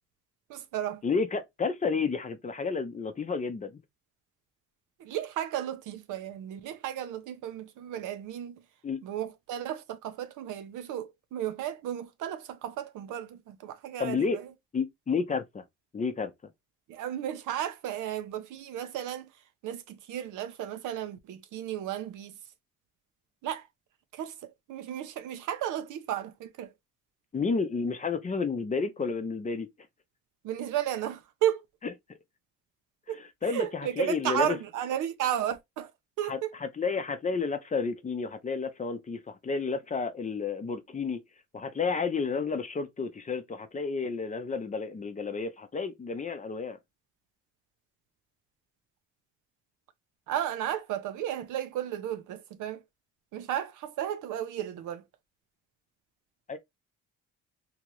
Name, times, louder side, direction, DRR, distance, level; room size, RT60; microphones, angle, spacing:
voice 1, 0.5-1.0 5.0-8.6 9.0-14.5 16.9-19.3 19.6-22.4 23.4-23.7 24.1-26.7 30.4-31.6 33.1-35.9 36.2-36.5 50.3-52.8 53.3-55.0, right 11 dB, 85° right, 0.6 m, -34 dB
voice 2, 1.0-3.8 8.8-9.0 14.0-14.4 14.7-15.6 15.9-16.3 27.3-29.7 33.2-34.6 36.3-41.2 41.5-46.8 56.5-56.6, left 5 dB, 25° left, 0.5 m, -31 dB
2.9 x 2.5 x 3.0 m
cardioid pair, 90°, 30 cm